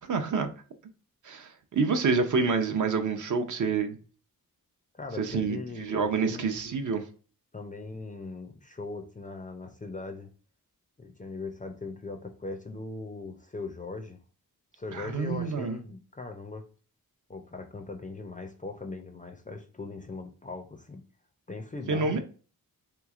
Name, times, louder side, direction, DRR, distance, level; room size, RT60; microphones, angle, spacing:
voice 1, 0.1-0.5 1.2-4.0 5.2-7.0 14.9-15.8 21.9-22.2, right 4 dB, 60° right, 0.6 m, -27 dB
voice 2, 4.9-6.5 7.5-10.3 11.0-14.2 14.8-16.6 17.3-21.0 21.5-22.2, left 3 dB, 25° left, 0.4 m, -39 dB
3.4 x 3.0 x 2.3 m
wide cardioid pair, 150°, 35 cm